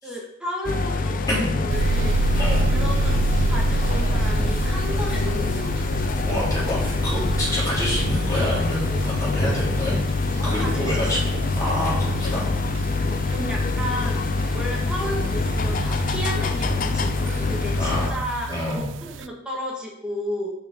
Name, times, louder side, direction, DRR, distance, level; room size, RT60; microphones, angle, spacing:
voice 1, 0.0-2.2 2.7-3.1 3.5-5.9 10.4-11.1 13.1-14.1 14.5-20.5, equal, 5° right, -3 dB, 2.0 m, -33 dB
sound 1, 0.6-18.1, left 3 dB, 45° left, 0.5 m, -25 dB
sound 2, 1.7-19.3, right 3 dB, 85° right, 0.4 m, -29 dB
voice 2, 2.4-2.7 6.2-10.0 10.3-11.2 11.6-12.5 17.8-18.2 18.5-18.9, left 1 dB, 20° left, -7 dB, 3.6 m, -27 dB
6.2 x 6.1 x 5.4 m, 0.77 s
head